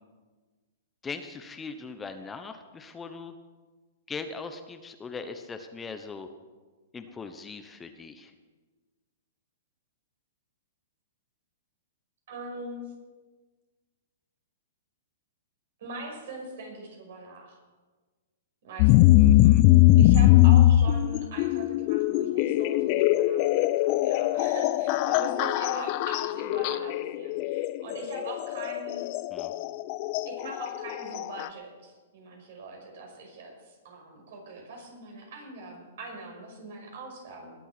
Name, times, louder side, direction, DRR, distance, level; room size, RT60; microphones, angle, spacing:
voice 1, 1.0-3.3 4.1-6.3 6.9-8.3 19.2-19.7 29.3-29.5, left 4 dB, 15° left, 8 dB, 1.0 m, -40 dB
voice 2, 12.3-12.8 15.8-17.6 18.6-19.1 19.9-29.1 30.3-37.5, right 2 dB, 65° right, 1 dB, 5.9 m, -41 dB
sound 1, 18.8-31.5, left 14 dB, 45° left, 0.5 m, -22 dB
20.5 x 8.3 x 6.1 m, 1.3 s
hypercardioid pair, 125°, 0 cm